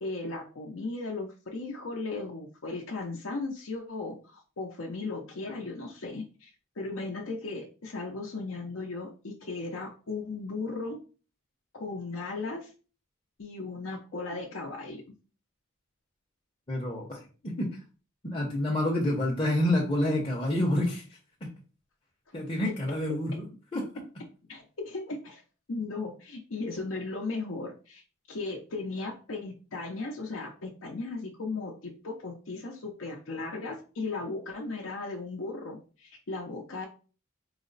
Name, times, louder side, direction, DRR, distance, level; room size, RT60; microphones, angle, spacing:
voice 1, 0.0-6.5 6.8-11.0 11.7-12.7 13.4-15.0 24.5-25.4 25.7-28.0 28.3-36.9, left 3 dB, 70° left, -1 dB, 0.7 m, -36 dB
voice 2, 16.7-17.2 17.4-17.7 18.2-21.0 22.3-23.8, left 1 dB, 25° left, -3 dB, 0.7 m, -28 dB
4.8 x 2.0 x 3.9 m, 0.36 s
head